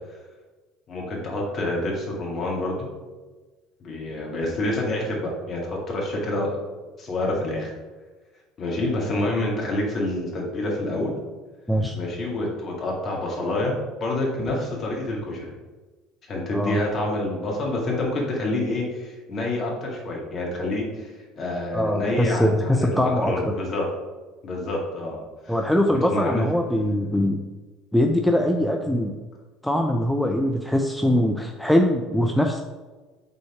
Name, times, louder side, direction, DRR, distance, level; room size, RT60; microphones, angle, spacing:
voice 1, 0.9-2.9 3.8-6.6 7.0-7.7 8.6-11.1 11.9-13.7 14.0-15.5 16.3-23.8 24.4-25.2 25.4-25.6 25.9-26.5, left 2 dB, 40° left, -2 dB, 1.9 m, -27 dB
voice 2, 21.7-23.3 25.5-27.4 27.9-29.2 29.6-32.6, left 1 dB, ahead, 3 dB, 0.5 m, -22 dB
5.7 x 3.9 x 4.8 m, 1.3 s
figure-of-eight pair, 60°, 0 cm